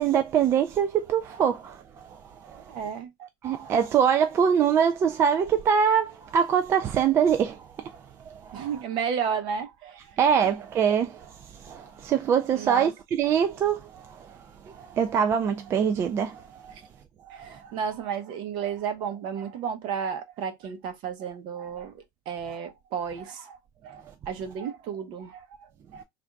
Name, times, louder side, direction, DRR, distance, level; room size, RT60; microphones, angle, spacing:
voice 1, 0.0-2.6 3.4-8.7 10.2-16.7 17.4-17.5, right 7 dB, 25° right, 0.3 m, -24 dB
voice 2, 2.6-3.9 8.5-10.2 12.5-12.9 16.7-16.8 17.3-23.6 23.8-26.0, right 7 dB, 50° right, 0.9 m, -33 dB
3.4 x 2.5 x 4.5 m
cardioid pair, 160°, 10 cm